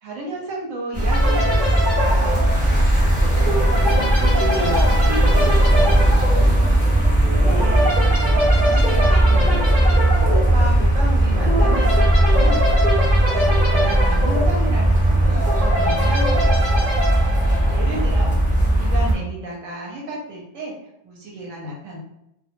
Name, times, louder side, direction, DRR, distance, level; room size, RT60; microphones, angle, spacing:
voice 1, 0.0-2.5 7.3-7.9 8.5-9.7 10.1-12.7 13.1-16.6 17.4-18.4 18.7-22.0, right 1 dB, 85° right, -3 dB, 1.0 m, -32 dB
sound 1, 0.9-19.1, right 1 dB, 10° right, 0.8 m, -17 dB
sound 2, 1.1-18.3, equal, 50° right, 0.8 m, -25 dB
voice 2, 3.7-6.5 17.4-18.0, left 1 dB, 50° left, -6 dB, 0.5 m, -32 dB
2.2 x 2.1 x 2.8 m, 0.85 s
omnidirectional pair, 1.3 m